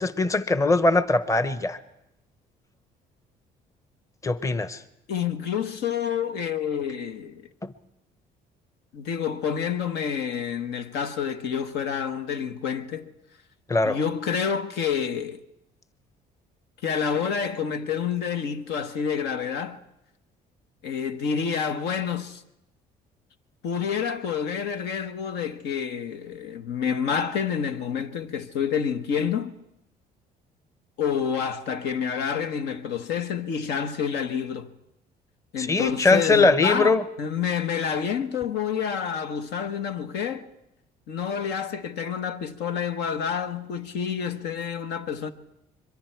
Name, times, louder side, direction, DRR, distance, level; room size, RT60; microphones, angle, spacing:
voice 1, 0.0-1.8 4.2-4.8 7.6-7.7 13.7-14.0 35.6-37.0, left 3 dB, 20° left, 0.9 m, -21 dB
voice 2, 5.1-7.5 8.9-13.1 13.8-15.4 16.8-19.8 20.8-22.4 23.6-29.5 31.0-34.7 35.5-40.5 41.1-45.3, left 7 dB, 80° left, 1.2 m, -28 dB
25.0 x 22.5 x 4.6 m
cardioid pair, 110°, 17 cm